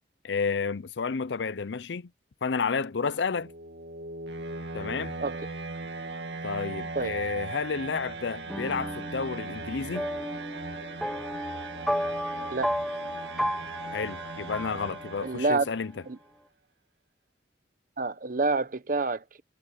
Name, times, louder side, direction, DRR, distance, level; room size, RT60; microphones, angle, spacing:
voice 1, 0.2-2.1 2.4-3.5 4.7-5.2 6.4-10.1 13.9-15.9, left 5 dB, 80° left, 0.6 m, -31 dB
sound 1, 3.0-15.9, right 3 dB, 75° right, 2.2 m, -39 dB
sound 2, 8.5-15.5, equal, ahead, 1.1 m, -34 dB
voice 2, 15.2-15.6 16.1-16.2 18.0-19.2, right 3 dB, 50° right, 1.0 m, -27 dB
head